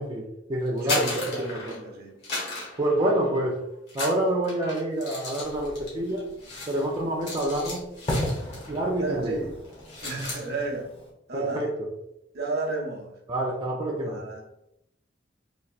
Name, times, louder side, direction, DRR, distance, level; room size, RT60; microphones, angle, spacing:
voice 1, 0.0-1.1 1.5-1.8 2.8-3.6 3.9-6.3 6.7-7.8 8.7-9.4 11.3-11.7 13.3-14.2, right 1 dB, 25° right, 0.4 m, -27 dB
sound 1, 0.7-1.9 2.2-3.5 3.9-8.8 9.1-9.3 9.6-10.5, left 2 dB, 65° left, 1.5 m, -35 dB
voice 2, 0.8-2.1 9.0-9.5 10.0-10.9 11.3-11.7 12.3-13.1 14.0-14.4, right 3 dB, 55° right, 0.7 m, -32 dB
Fireworks, 5.4-11.1, left 1 dB, 30° left, 0.7 m, -36 dB
4.0 x 2.5 x 2.4 m
head